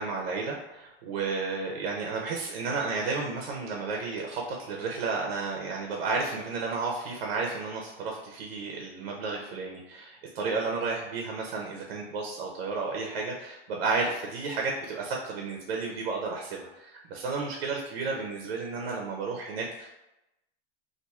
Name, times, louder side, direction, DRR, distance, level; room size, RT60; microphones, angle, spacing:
voice 1, 0.0-19.9, right 4 dB, 85° right, 0 dB, 0.7 m, -32 dB
2.6 x 2.3 x 4.1 m, 0.93 s
supercardioid pair, 150°, 30 cm